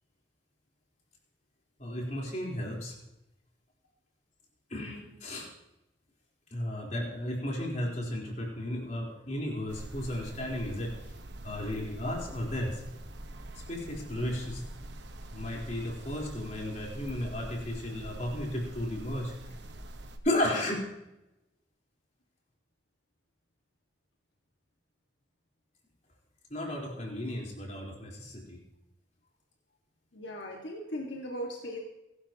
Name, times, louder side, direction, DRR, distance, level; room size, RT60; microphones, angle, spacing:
voice 1, 1.8-2.9 4.7-5.5 6.5-10.9 11.4-12.8 13.7-14.6 15.3-19.3 20.2-20.8 26.5-28.6, left 1 dB, 40° left, -3 dB, 4.3 m, -34 dB
voice 2, 4.7-5.1 30.1-31.8, equal, 75° left, -1 dB, 2.0 m, -39 dB
sound 1, 9.7-20.2, right 1 dB, 70° right, 1.3 m, -44 dB
22.5 x 12.5 x 3.0 m, 0.93 s
head